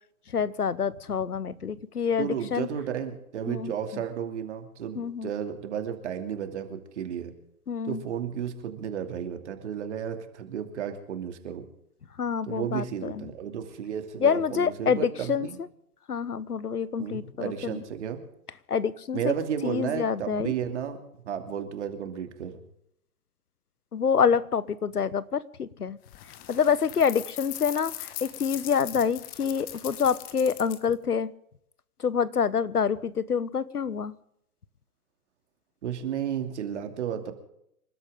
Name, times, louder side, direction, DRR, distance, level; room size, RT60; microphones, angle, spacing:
voice 1, 0.3-2.7 3.5-4.0 4.9-5.3 7.7-8.0 12.2-13.3 14.2-15.5 16.1-17.8 18.7-19.3 19.6-20.5 23.9-26.0 26.5-31.3 32.0-34.1, left 6 dB, 80° left, 19 dB, 1.2 m, -27 dB
voice 2, 2.2-7.3 7.8-11.6 12.4-15.6 17.0-18.2 19.1-22.6 35.8-37.3, right 8 dB, 50° right, 6 dB, 2.8 m, -33 dB
sound 1, 26.1-30.9, left 14 dB, 20° left, 1.1 m, -40 dB
27.5 x 13.0 x 3.7 m, 0.75 s
figure-of-eight pair, 130°, 45 cm